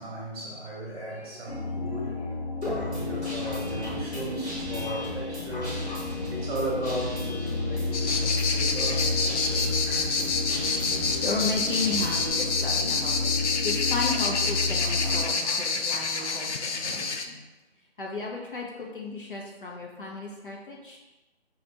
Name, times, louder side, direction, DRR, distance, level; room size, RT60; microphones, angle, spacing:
voice 1, 0.0-2.4 2.7-5.8 6.3-9.7 15.7-15.9 16.8-17.1, right 1 dB, 35° right, -4 dB, 1.1 m, -36 dB
sound 1, 1.5-15.2, left 3 dB, 30° left, 1.2 m, -32 dB
Guitar, 2.6-12.3, equal, ahead, 0.7 m, -37 dB
voice 2, 3.4-3.9 4.8-5.0 5.5-6.1 10.2-10.3 10.7-13.3 13.6-17.4 18.0-21.0, left 3 dB, 50° left, -2 dB, 0.8 m, -35 dB
sound 2, 7.9-17.3, left 4 dB, 90° left, 0.5 m, -28 dB
3.3 x 2.5 x 3.9 m, 1.1 s
figure-of-eight pair, 165°, 34 cm